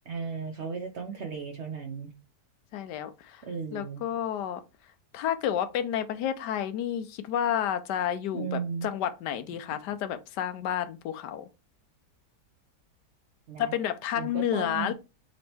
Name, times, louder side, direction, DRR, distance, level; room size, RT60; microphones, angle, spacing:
voice 1, 0.1-2.1 3.4-4.0 8.3-8.9 13.5-13.7 14.2-14.9, right 6 dB, 65° right, 0.7 m, -35 dB
voice 2, 2.7-3.4 3.7-4.6 5.1-11.5 13.6-14.9, left 10 dB, 80° left, 1.2 m, -30 dB
5.2 x 2.9 x 3.3 m
omnidirectional pair, 1.8 m